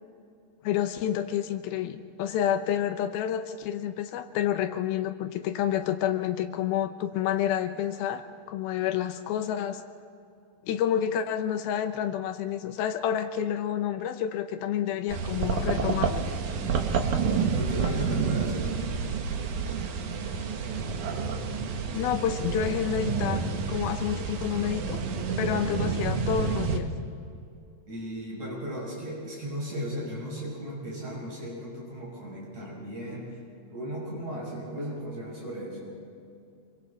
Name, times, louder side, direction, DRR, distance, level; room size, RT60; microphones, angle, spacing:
voice 1, 0.6-9.8 10.7-16.3 21.9-25.0 25.4-26.9, left 10 dB, 75° left, 8 dB, 2.6 m, -29 dB
sound 1, 15.1-26.8, right 5 dB, 60° right, 2.3 m, -29 dB
voice 2, 17.5-18.8 27.9-33.4 33.7-35.9, equal, 45° right, -5 dB, 7.9 m, -36 dB
26.5 x 24.5 x 4.1 m, 2.5 s
omnidirectional pair, 4.6 m